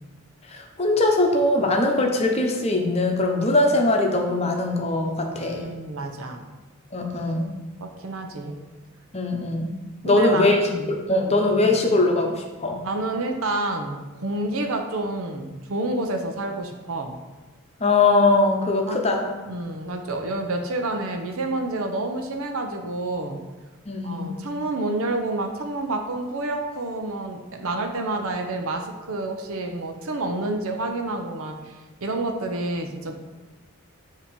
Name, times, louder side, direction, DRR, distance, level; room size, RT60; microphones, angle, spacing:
voice 1, 0.4-5.7 6.9-7.5 9.1-9.7 10.0-12.8 17.8-19.3 23.8-24.3, left 2 dB, 30° left, 2 dB, 0.8 m, -21 dB
voice 2, 5.4-6.5 7.8-8.6 10.0-10.9 12.8-17.2 18.9-19.0 19.5-23.4 24.0-33.2, right 2 dB, 80° right, 4 dB, 0.8 m, -29 dB
7.3 x 2.9 x 5.2 m, 1.2 s
head